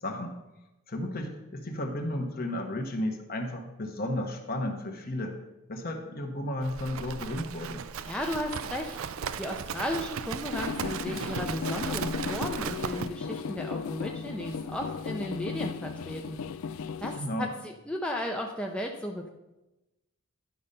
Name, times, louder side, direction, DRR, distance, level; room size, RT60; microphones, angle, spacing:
voice 1, 0.0-0.3 0.9-5.4 5.7-7.8 17.2-17.5, left 1 dB, 45° left, 4 dB, 1.2 m, -33 dB
Livestock farm animals working animals, 6.6-13.1, right 7 dB, 70° right, 0.4 m, -36 dB
voice 2, 8.0-16.4 17.0-19.3, left 1 dB, 5° left, 1 dB, 0.5 m, -35 dB
sound 1, 10.5-17.2, left 5 dB, 70° left, 0.4 m, -35 dB
10.5 x 5.5 x 5.3 m, 1.0 s
head